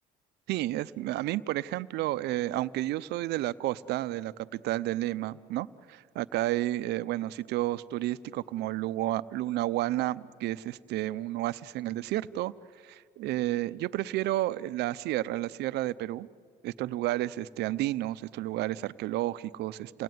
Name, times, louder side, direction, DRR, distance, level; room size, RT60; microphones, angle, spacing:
voice 1, 0.5-12.5 12.8-16.3 16.6-20.0, right 15 dB, 80° right, 16 dB, 0.7 m, -31 dB
29.0 x 18.5 x 9.4 m, 2.2 s
cardioid pair, 110°, 17 cm